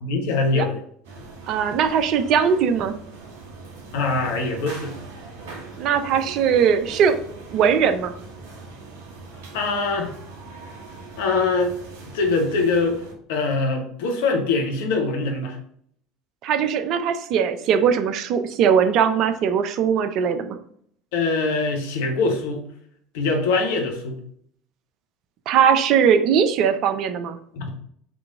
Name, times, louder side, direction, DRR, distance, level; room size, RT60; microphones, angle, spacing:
voice 1, 0.0-0.8 3.9-4.9 9.5-10.1 11.2-11.7 12.1-13.0 13.3-15.6 21.1-22.6 23.1-24.2 27.5-27.7, left 3 dB, 70° left, 2 dB, 1.0 m, -23 dB
sound 1, 1.0-13.1, right 3 dB, 70° right, 1.7 m, -41 dB
voice 2, 1.5-2.9 5.8-7.2 7.5-8.1 16.4-20.6 25.5-27.4, right 7 dB, 55° right, 8 dB, 0.6 m, -20 dB
3.8 x 3.3 x 3.6 m, 0.63 s
hypercardioid pair, 70°, 0 cm